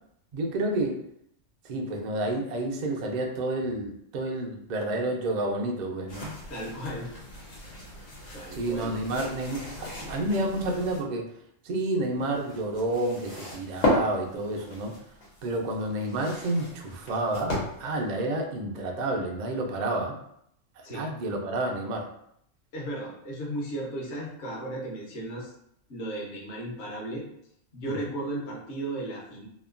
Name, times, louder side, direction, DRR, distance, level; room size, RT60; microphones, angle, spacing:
voice 1, 0.3-1.0 1.6-6.3 8.5-11.3 11.6-14.9 15.4-20.1 20.9-22.1 27.8-28.0, right 2 dB, 80° right, 1 dB, 0.4 m, -30 dB
sound 1, 6.1-11.0 12.0-18.0, left 1 dB, 80° left, 1.3 m, -35 dB
voice 2, 6.5-7.1 8.3-8.9 20.8-21.1 22.7-25.5 25.9-27.2 27.7-29.5, right 1 dB, 60° left, -3 dB, 1.0 m, -35 dB
3.0 x 2.1 x 2.4 m, 0.73 s
omnidirectional pair, 1.3 m